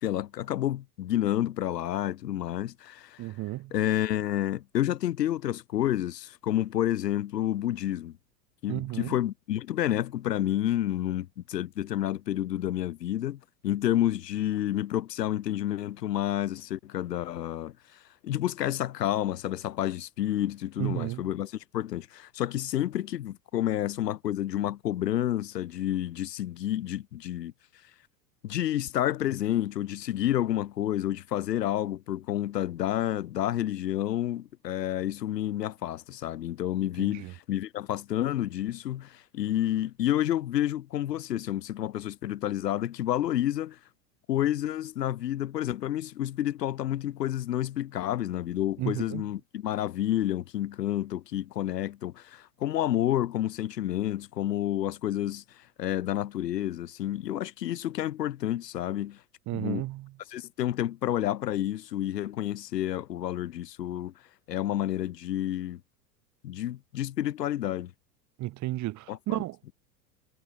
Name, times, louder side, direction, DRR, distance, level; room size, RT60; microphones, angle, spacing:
voice 1, 0.0-3.3 3.7-8.2 8.6-17.7 18.2-27.5 28.4-43.8 44.3-59.2 59.5-59.9 60.3-64.1 64.5-65.8 66.4-67.9 69.1-69.4, left 12 dB, 75° left, 1.4 m, -29 dB
voice 2, 3.2-3.7 8.7-9.2 20.8-21.2 37.0-37.3 48.8-49.2 59.5-60.1 68.4-69.7, right 17 dB, 35° right, 1.4 m, -33 dB
hypercardioid pair, 90°, 49 cm